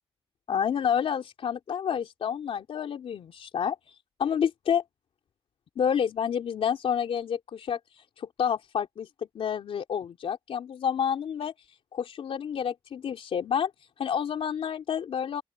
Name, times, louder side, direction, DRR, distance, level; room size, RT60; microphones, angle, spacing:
voice 1, 0.5-3.8 4.2-4.8 5.8-7.8 8.2-9.1 9.4-11.5 11.9-13.7 14.0-15.4, left 8 dB, 85° left, 3.4 m, -29 dB
open air
cardioid pair, 75°, 10 cm